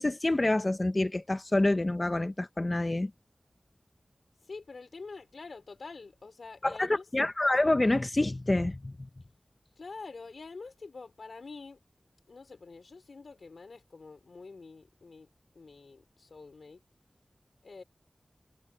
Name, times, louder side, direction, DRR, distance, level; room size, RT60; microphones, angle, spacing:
voice 1, 0.0-3.1 6.6-8.9, left 2 dB, 35° left, 1.0 m, -27 dB
voice 2, 4.4-7.0 9.8-11.8 12.3-15.3 15.5-16.8 17.6-17.8, left 4 dB, 85° left, 4.5 m, -46 dB
wide cardioid pair, 60°, 0 cm